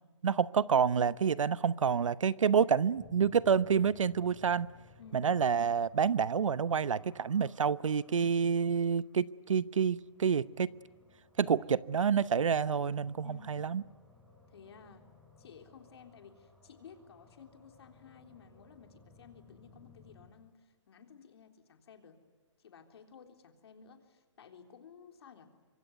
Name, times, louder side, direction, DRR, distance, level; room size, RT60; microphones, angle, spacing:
voice 1, 0.2-4.7 5.1-10.7 11.4-13.8, right 7 dB, 90° right, 0.9 m, -28 dB
sound 1, 2.9-20.3, left 4 dB, ahead, 4.2 m, -61 dB
voice 2, 14.5-15.1 15.4-22.2 22.6-25.5, left 6 dB, 55° left, 3.7 m, -55 dB
26.0 x 24.0 x 9.4 m
hypercardioid pair, 165°, 16 cm